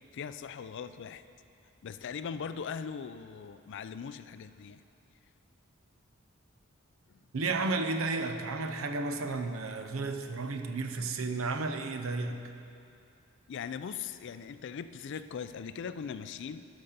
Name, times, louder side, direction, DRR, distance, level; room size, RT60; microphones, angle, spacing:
voice 1, 0.1-1.2 1.8-4.8 13.5-16.7, left 6 dB, 55° left, 12 dB, 0.3 m, -40 dB
voice 2, 7.3-12.4, right 3 dB, 70° right, 7 dB, 0.7 m, -32 dB
11.0 x 5.3 x 6.6 m, 2.6 s
head